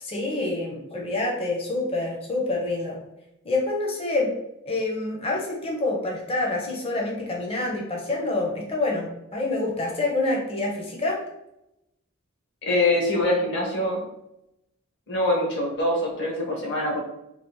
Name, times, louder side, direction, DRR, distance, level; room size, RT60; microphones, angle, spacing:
voice 1, 0.0-3.0 3.4-4.3 4.7-11.2, left 2 dB, 30° left, -1 dB, 0.7 m, -27 dB
voice 2, 12.7-14.0 15.1-17.0, left 1 dB, 55° left, -2 dB, 1.0 m, -24 dB
3.4 x 2.4 x 2.9 m, 0.86 s
head